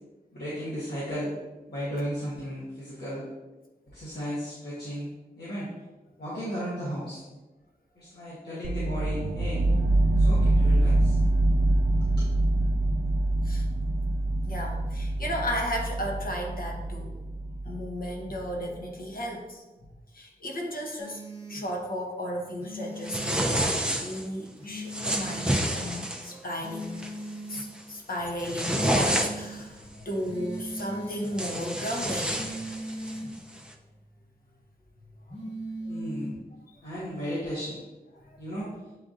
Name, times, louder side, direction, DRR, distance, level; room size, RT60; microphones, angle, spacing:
voice 1, 0.3-1.3 1.7-3.2 3.9-5.1 5.4-5.7 6.2-7.2 8.0-9.6 10.2-11.2 12.0-12.2 35.9-36.3 36.8-37.8 38.4-38.7, equal, 90° left, -10 dB, 1.2 m, -35 dB
sound 1, 8.6-18.5, right 2 dB, 75° right, 0.4 m, -25 dB
voice 2, 14.4-17.1 17.6-19.6 20.1-21.2 21.5-27.0 27.5-32.5 32.8-32.9 35.8-36.0 38.1-38.2, equal, 65° left, 0 dB, 0.9 m, -34 dB
sound 2, 21.0-21.6 22.6-23.6 24.6-25.6 26.6-27.6 28.6-29.6 30.3-31.3 32.3-33.3 35.3-36.3, equal, 35° left, 1.1 m, -39 dB
sound 3, 23.0-24.3 24.9-26.3 26.8-27.1 27.5-27.8 28.2-29.6 30.8-30.9 31.2-33.2, right 1 dB, 5° right, 0.5 m, -29 dB
7.5 x 2.6 x 2.5 m, 1.1 s
cardioid pair, 50°, 16 cm